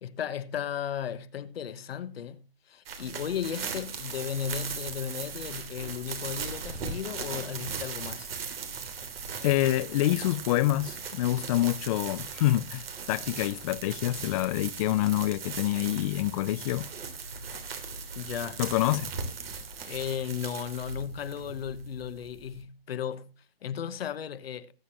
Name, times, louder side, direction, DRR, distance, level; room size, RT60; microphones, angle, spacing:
voice 1, 0.0-8.3 18.1-18.6 19.4-23.3 23.6-24.7, left 8 dB, 75° left, 1.3 m, -35 dB
sound 1, 2.9-22.6, right 5 dB, 70° right, 3.1 m, -39 dB
voice 2, 9.4-16.9 18.6-19.1, left 15 dB, 35° left, 0.5 m, -27 dB
19.5 x 8.4 x 3.0 m
hypercardioid pair, 135°, 30 cm